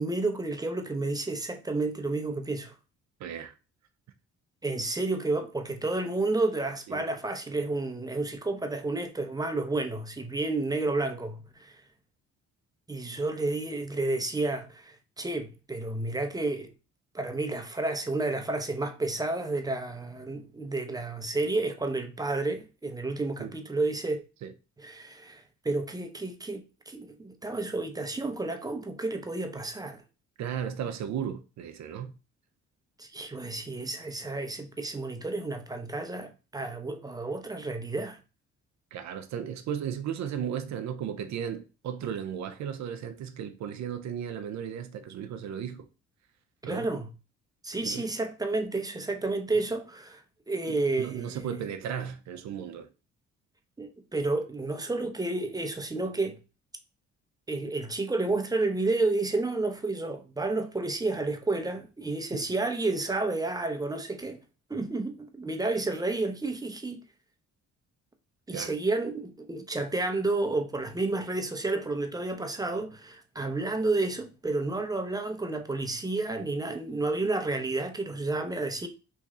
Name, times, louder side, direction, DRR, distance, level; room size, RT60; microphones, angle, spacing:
voice 1, 0.0-2.7 4.6-11.8 12.9-16.7 17.1-24.2 24.8-30.0 33.0-38.2 46.6-47.1 47.6-50.2 50.5-51.6 53.8-56.4 57.5-64.4 64.7-67.0 68.5-78.9, right 2 dB, 10° right, 0.6 m, -31 dB
voice 2, 3.2-3.5 6.9-7.1 23.4-23.5 24.4-24.5 30.4-32.1 38.9-45.9 46.6-46.9 47.8-48.1 50.7-52.9 62.3-62.5 68.5-68.7, right 8 dB, 65° right, 0.5 m, -35 dB
3.1 x 2.6 x 3.5 m
cardioid pair, 90°, 30 cm